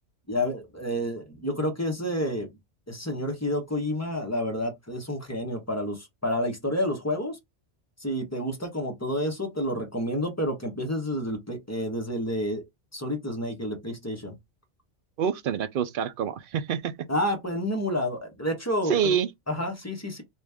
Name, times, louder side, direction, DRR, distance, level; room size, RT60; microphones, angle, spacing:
voice 1, 0.3-2.5 2.9-7.4 8.0-12.6 12.9-14.3 17.1-19.0 19.5-20.2, equal, 15° left, 0.9 m, -29 dB
voice 2, 15.2-16.9 18.9-19.3, right 8 dB, 60° right, 0.6 m, -26 dB
3.0 x 2.6 x 3.4 m
omnidirectional pair, 1.2 m